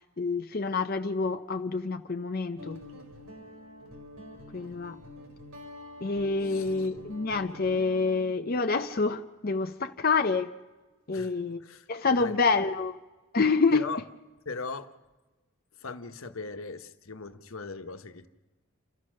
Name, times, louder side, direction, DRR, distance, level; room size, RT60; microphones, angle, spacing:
voice 1, 0.2-2.8 4.5-5.0 6.0-10.5 11.1-11.6 11.9-13.0 13.3-13.8, left 4 dB, 45° left, 0.6 m, -27 dB
Guitar, 2.6-8.2, left 2 dB, 80° right, 4.8 m, -46 dB
voice 2, 6.4-6.9 11.1-11.9 12.2-12.4 13.7-14.0 14.4-14.9 15.7-18.3, left 4 dB, 75° left, 1.2 m, -39 dB
29.0 x 14.0 x 6.4 m
head